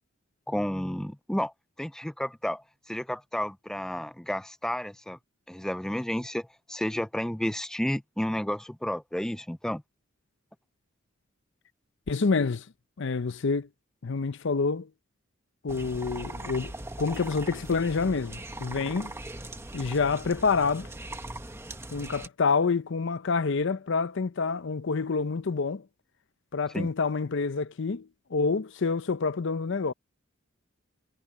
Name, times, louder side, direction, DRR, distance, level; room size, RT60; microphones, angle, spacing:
voice 1, 0.5-1.5 1.8-5.2 5.5-9.8 26.7-26.9, equal, 5° left, 0.3 m, -31 dB
voice 2, 12.1-12.6 13.0-13.7 14.0-14.9 15.6-16.7 17.0-19.1 19.7-20.9 21.9-25.8 26.5-29.9, left 4 dB, 65° left, 0.6 m, -27 dB
sound 1, 15.7-22.3, right 1 dB, 15° right, 1.4 m, -40 dB
head